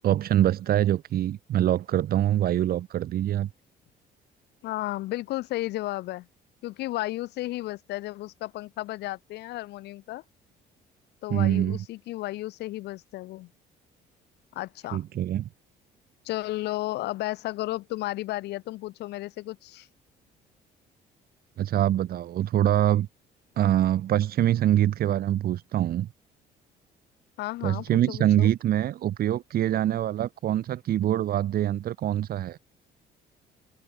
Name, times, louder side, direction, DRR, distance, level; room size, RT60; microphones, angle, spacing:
voice 1, 0.0-3.5 11.3-11.8 14.9-15.5 21.6-23.1 23.6-26.1 27.6-32.6, right 12 dB, 65° right, 4.0 m, -24 dB
voice 2, 4.6-6.3 6.6-10.2 11.2-13.5 14.5-15.0 16.2-19.9 27.4-28.5, left 17 dB, 80° left, 5.6 m, -33 dB
cardioid pair, 110°, 17 cm